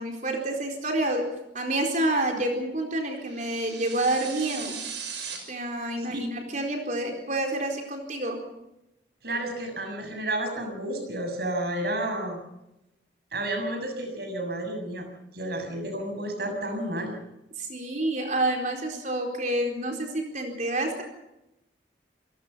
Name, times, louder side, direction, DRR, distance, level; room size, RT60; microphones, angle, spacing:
voice 1, 0.0-4.8 5.5-8.4 17.6-21.0, right 1 dB, 45° right, 2 dB, 4.3 m, -28 dB
sound 1, 3.3-5.4, right 6 dB, 75° right, 6.3 m, -38 dB
voice 2, 9.2-12.4 13.3-15.1 15.3-17.2, right 1 dB, 60° right, 5 dB, 7.1 m, -31 dB
28.0 x 18.0 x 5.8 m, 0.90 s
head